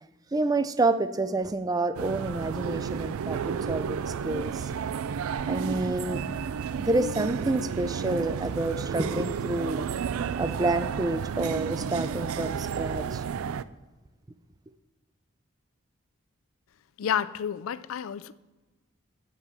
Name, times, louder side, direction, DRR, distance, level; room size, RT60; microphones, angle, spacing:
voice 1, 0.3-4.7 5.5-6.2 6.8-9.9 10.4-13.2, right 2 dB, 20° right, 0.4 m, -28 dB
sound 1, 1.9-13.6, right 7 dB, 90° right, 0.3 m, -32 dB
voice 2, 17.0-18.3, left 8 dB, 80° left, 0.4 m, -30 dB
8.2 x 5.4 x 7.4 m
head